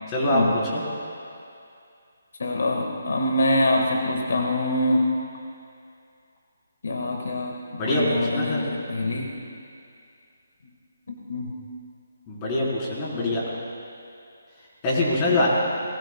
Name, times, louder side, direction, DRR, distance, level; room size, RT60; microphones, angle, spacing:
voice 1, 0.3-0.6 2.4-5.1 6.8-9.3 11.1-11.5 15.2-15.5, left 1 dB, 70° left, 1 dB, 1.7 m, -25 dB
voice 2, 7.8-8.6 12.3-13.4 14.8-15.5, left 1 dB, 25° left, -6 dB, 4.0 m, -24 dB
22.0 x 20.0 x 2.3 m, 2.5 s
hypercardioid pair, 160°, 0 cm